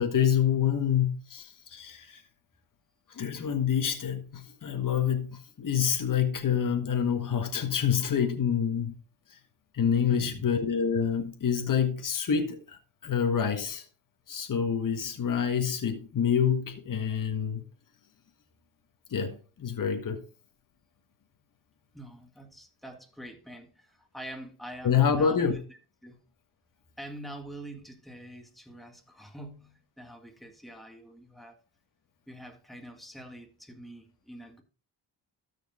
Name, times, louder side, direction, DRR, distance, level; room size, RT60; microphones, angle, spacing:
voice 1, 0.0-2.2 3.1-9.0 9.7-13.8 14.3-17.6 19.1-20.2 24.8-25.6, left 8 dB, 45° left, 1.6 m, -27 dB
voice 2, 10.1-10.5 21.9-26.2 27.0-31.6 32.3-34.6, right 1 dB, ahead, 1.9 m, -45 dB
13.0 x 5.1 x 3.7 m
cardioid pair, 100°, 45 cm